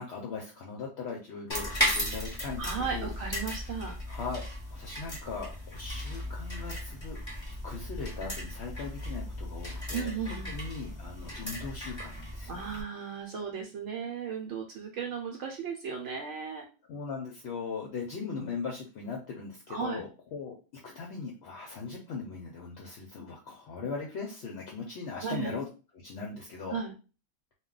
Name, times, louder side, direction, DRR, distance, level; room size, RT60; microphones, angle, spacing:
voice 1, 0.0-3.1 3.6-3.7 4.1-4.4 4.7-7.2 7.6-12.6 16.9-20.5 20.8-25.7 26.0-26.8, left 4 dB, 65° left, -1 dB, 0.8 m, -39 dB
sound 1, 1.5-12.8, equal, 25° left, 0.9 m, -36 dB
voice 2, 2.6-3.9 9.9-10.5 12.5-16.6 19.7-20.0 25.2-25.5 26.7-26.9, right 6 dB, 70° right, 1 dB, 0.9 m, -35 dB
2.3 x 2.2 x 3.7 m, 0.33 s
omnidirectional pair, 1.3 m